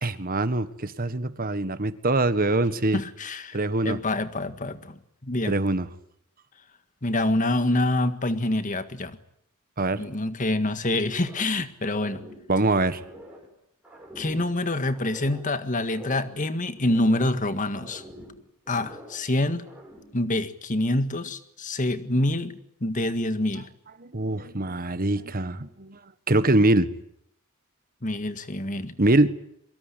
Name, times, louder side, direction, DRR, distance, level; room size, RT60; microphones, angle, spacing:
voice 1, 0.0-3.0 3.5-4.0 5.4-5.9 9.8-10.0 12.5-13.0 24.0-26.0 26.3-26.9 29.0-29.3, right 2 dB, 40° right, 12 dB, 1.5 m, -23 dB
voice 2, 2.9-3.6 3.8-5.6 7.0-9.2 10.0-12.2 14.2-18.0 18.7-19.6 20.1-23.7 28.0-28.9, left 1 dB, 35° left, 10 dB, 1.8 m, -26 dB
sound 1, 10.9-11.6 11.8-13.5 13.8-15.5 15.8-17.4 17.7-19.3 19.6-20.2, equal, 5° right, 7.6 m, -45 dB
24.0 x 22.5 x 10.0 m, 0.71 s
head